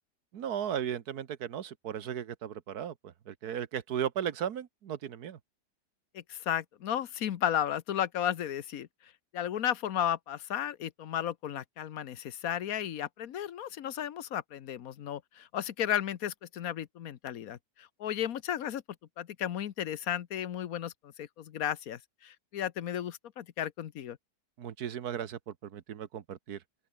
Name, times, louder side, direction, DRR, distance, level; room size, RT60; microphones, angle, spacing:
voice 1, 0.3-5.4 24.6-26.6, right 9 dB, 65° right, 1.6 m, -36 dB
voice 2, 6.1-18.8 19.2-24.2, left 10 dB, 60° left, 1.2 m, -34 dB
open air
omnidirectional pair, 1.9 m